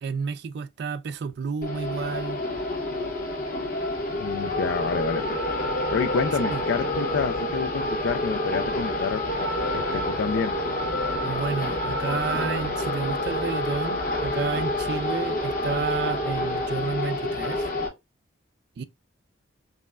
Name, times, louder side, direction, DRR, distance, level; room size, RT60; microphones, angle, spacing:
voice 1, 0.0-2.4 6.5-6.6 11.2-17.7 18.8-18.9, right 5 dB, 55° right, 0.3 m, -31 dB
sound 1, 1.6-17.9, left 1 dB, 40° left, 0.9 m, -28 dB
voice 2, 4.2-5.4 5.9-9.2 9.7-10.5, left 5 dB, 65° left, 0.3 m, -28 dB
5.3 x 2.1 x 2.4 m
head